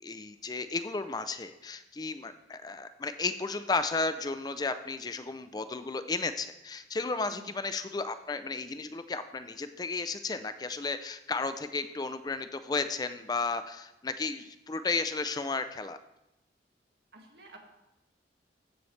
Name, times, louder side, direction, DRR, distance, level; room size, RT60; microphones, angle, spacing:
voice 1, 0.0-16.0, left 4 dB, 20° left, 10 dB, 0.4 m, -33 dB
voice 2, 17.1-17.6, right 1 dB, 70° right, 1 dB, 1.9 m, -51 dB
15.5 x 7.2 x 3.2 m, 0.94 s
head